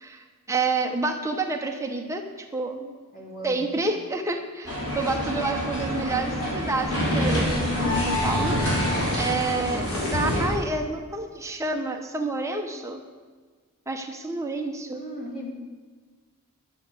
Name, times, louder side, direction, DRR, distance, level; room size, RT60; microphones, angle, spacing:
voice 1, 0.0-2.9 3.4-8.5 9.2-9.8 10.1-13.0 13.9-15.0, right 3 dB, 15° right, 3 dB, 1.1 m, -29 dB
voice 2, 3.1-3.7 14.9-15.5, right 1 dB, 40° left, -1 dB, 3.2 m, -36 dB
sound 1, 4.6-10.5, equal, 80° left, 5.1 m, -26 dB
12.5 x 8.3 x 8.1 m, 1.4 s
head